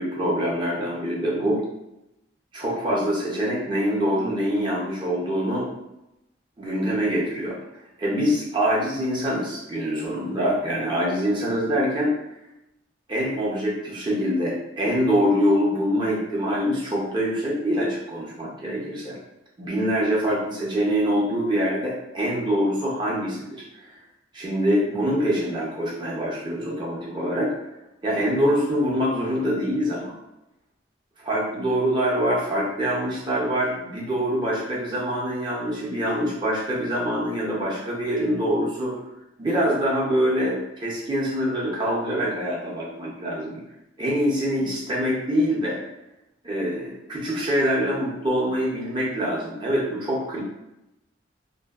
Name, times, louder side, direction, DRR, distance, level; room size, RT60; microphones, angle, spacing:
voice 1, 0.0-1.6 2.5-5.7 6.6-7.6 8.0-12.1 13.1-19.2 19.6-23.6 24.3-27.5 28.0-30.2 31.2-39.0 39.4-43.6 44.0-45.8 46.4-50.4, equal, 25° right, -5 dB, 0.5 m, -24 dB
2.6 x 2.3 x 2.3 m, 0.89 s
head